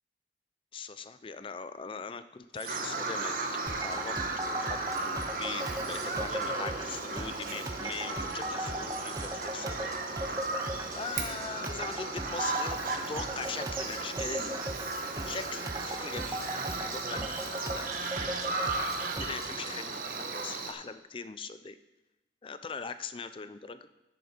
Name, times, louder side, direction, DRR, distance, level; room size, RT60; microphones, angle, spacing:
voice 1, 0.7-9.9 10.3-10.4 10.9-14.6 15.2-17.8 19.2-21.8 22.4-23.9, left 5 dB, 30° left, 12 dB, 0.4 m, -41 dB
sound 1, 2.5-2.9 4.3-6.1 7.6-9.3 9.7-10.0, right 7 dB, 70° right, 1.5 m, -49 dB
Bird vocalization bird call bird song, 2.6-20.7, right 3 dB, 50° right, 1.1 m, -35 dB
sound 2, 3.7-19.5, right 1 dB, 20° right, 0.6 m, -39 dB
10.0 x 9.8 x 4.4 m, 1.0 s
head